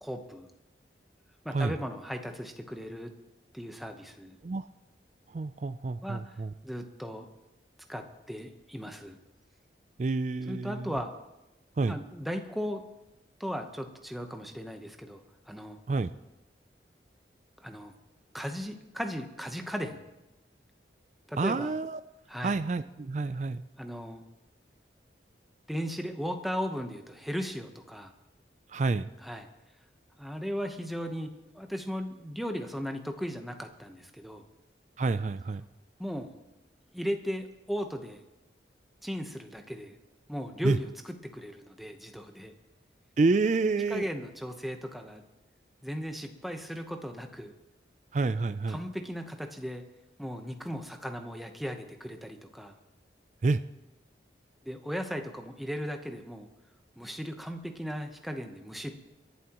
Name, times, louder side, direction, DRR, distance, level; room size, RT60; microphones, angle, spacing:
voice 1, 0.0-0.5 1.4-3.1 3.5-4.4 6.0-6.3 6.6-7.3 7.9-9.2 10.5-11.1 11.9-12.8 13.4-15.2 15.5-15.8 17.6-17.9 18.3-20.1 21.3-21.7 22.3-22.6 23.8-24.2 25.7-28.1 29.2-29.5 30.2-34.4 36.0-36.3 36.9-38.2 39.0-40.0 40.3-40.9 41.3-42.5 43.9-45.2 45.8-47.5 48.7-49.8 50.2-52.7 54.6-56.5 57.0-58.9, equal, ahead, 4 dB, 0.9 m, -36 dB
voice 2, 5.3-6.5 10.0-11.0 11.8-12.0 15.9-16.1 21.4-22.0 22.4-23.6 28.7-29.1 35.0-35.6 40.6-40.8 43.2-44.1 48.1-48.8 53.4-53.6, right 3 dB, 40° right, 11 dB, 0.4 m, -28 dB
28.0 x 11.0 x 3.0 m, 0.98 s
head